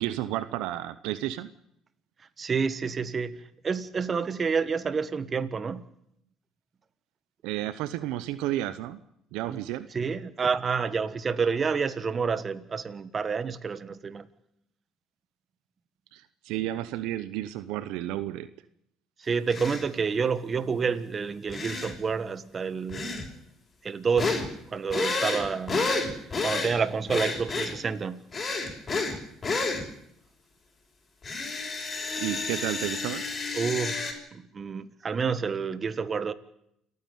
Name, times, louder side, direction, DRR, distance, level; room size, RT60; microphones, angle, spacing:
voice 1, 0.0-1.5 7.4-9.0 9.3-9.9 16.1-18.5 32.2-33.3, right 14 dB, 80° right, 0.8 m, -32 dB
voice 2, 2.4-5.8 9.5-9.6 9.9-14.3 19.2-23.2 23.8-24.4 24.7-25.9 26.4-28.2 33.5-36.3, right 5 dB, 35° right, 1.4 m, -29 dB
sound 1, 19.5-19.8 21.5-21.9 22.9-23.3 24.2-24.5 24.9-26.8 27.1-27.7 28.3-29.2 29.4-29.8 31.2-34.1, left 3 dB, 35° left, 5.9 m, -30 dB
29.0 x 9.7 x 9.3 m
supercardioid pair, 75°, 0 cm